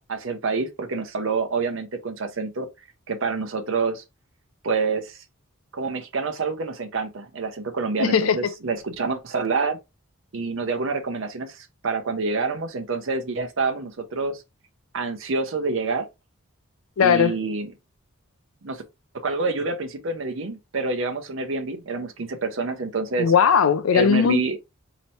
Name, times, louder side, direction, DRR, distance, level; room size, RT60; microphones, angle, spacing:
voice 1, 0.0-2.7 3.1-4.0 4.6-5.2 5.7-9.8 10.3-14.4 14.9-16.0 17.0-17.7 18.6-18.8 19.2-23.3 23.9-24.6, right 4 dB, 65° right, 0.7 m, -27 dB
voice 2, 8.0-8.5 17.0-17.4 23.2-24.6, left 6 dB, 85° left, 0.4 m, -19 dB
4.3 x 3.0 x 2.7 m
head